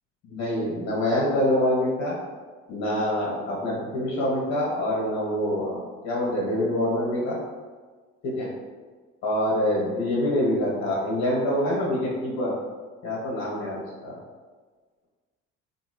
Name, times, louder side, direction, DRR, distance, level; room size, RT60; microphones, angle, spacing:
voice 1, 0.3-2.2 2.7-7.4 8.2-8.5 9.2-12.5 13.0-14.2, left 1 dB, 65° left, -5 dB, 1.5 m, -25 dB
3.6 x 2.9 x 3.1 m, 1.4 s
supercardioid pair, 80°, 29 cm